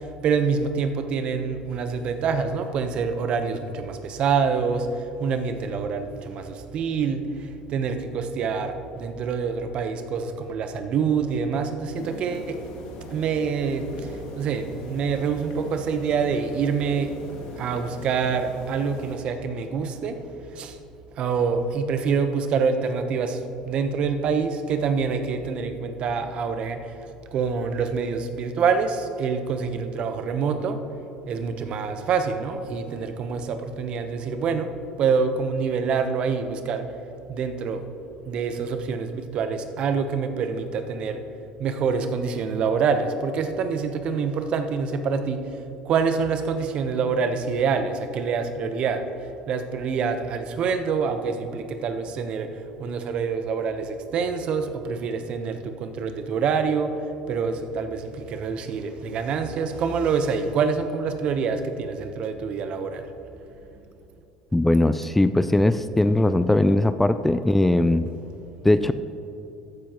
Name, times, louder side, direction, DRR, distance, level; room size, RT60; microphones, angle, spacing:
voice 1, 0.2-4.9 5.2-7.2 7.7-12.6 13.1-13.9 14.4-17.1 17.6-20.2 20.5-20.8 21.2-23.4 23.6-26.8 27.3-30.8 31.3-34.7 35.0-36.8 37.3-37.8 38.3-41.2 41.6-45.4 45.9-49.0 49.5-52.5 52.8-56.9 57.3-63.0, right 5 dB, 55° right, 8 dB, 0.9 m, -26 dB
sound 1, 11.9-19.2, left 1 dB, 70° left, 2.0 m, -40 dB
voice 2, 64.5-68.1 68.6-68.9, left 1 dB, 10° left, 12 dB, 0.4 m, -20 dB
14.0 x 10.0 x 3.0 m, 2.9 s
supercardioid pair, 90°, 2 cm